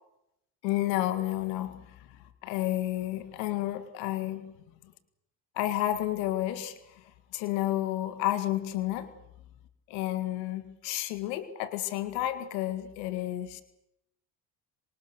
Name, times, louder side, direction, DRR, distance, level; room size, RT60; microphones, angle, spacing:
voice 1, 0.6-2.0 2.4-4.5 5.6-6.8 7.3-9.1 9.9-13.6, left 14 dB, 85° left, 1.9 m, -31 dB
26.5 x 24.5 x 6.6 m
hypercardioid pair, 60°, 48 cm